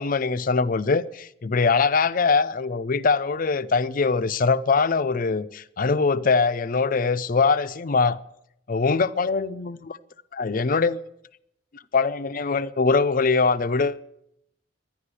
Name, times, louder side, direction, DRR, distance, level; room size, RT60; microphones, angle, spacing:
voice 1, 0.0-8.2 8.7-10.0 10.3-11.0 11.9-14.0, left 4 dB, 45° left, 0.5 m, -22 dB
11.5 x 10.5 x 9.7 m
head